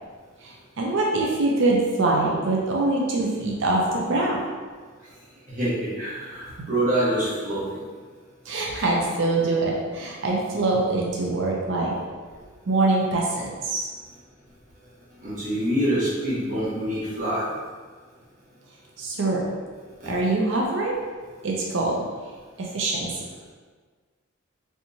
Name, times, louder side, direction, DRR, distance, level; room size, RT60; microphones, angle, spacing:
voice 1, 0.4-4.4 6.6-6.7 8.5-11.9 12.7-13.9 19.0-19.4 20.0-21.0 21.4-22.0 22.6-23.1, right 2 dB, 60° right, -2 dB, 0.5 m, -24 dB
voice 2, 5.5-7.8 15.2-17.4 20.0-20.1, right 1 dB, 35° right, -8 dB, 1.1 m, -26 dB
3.4 x 2.9 x 2.7 m, 1.5 s
head